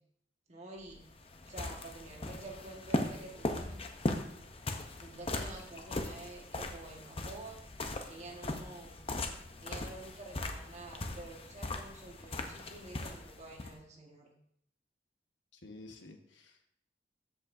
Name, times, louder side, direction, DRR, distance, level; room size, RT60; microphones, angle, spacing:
voice 1, 0.5-1.0 1.4-3.8 5.0-7.6 8.0-9.0 9.6-14.3, right 2 dB, 40° right, 0 dB, 1.6 m, -49 dB
sound 1, 0.8-13.8, left 2 dB, 30° left, 0.7 m, -39 dB
voice 2, 15.5-16.7, left 2 dB, 85° left, 3 dB, 1.2 m, -52 dB
13.0 x 5.4 x 2.6 m, 0.72 s
head